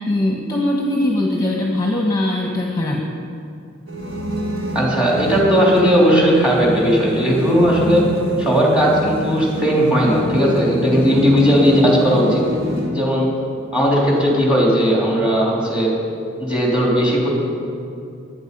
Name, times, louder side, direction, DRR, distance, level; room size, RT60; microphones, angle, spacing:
voice 1, 0.1-3.1, left 1 dB, 15° left, -1 dB, 1.2 m, -20 dB
sound 1, 3.9-12.9, equal, 75° right, 3.3 m, -25 dB
voice 2, 4.8-8.1 8.4-12.4 12.9-13.3 13.7-15.9 16.4-17.3, equal, 5° right, -4 dB, 3.4 m, -16 dB
22.5 x 9.4 x 5.5 m, 2.5 s
head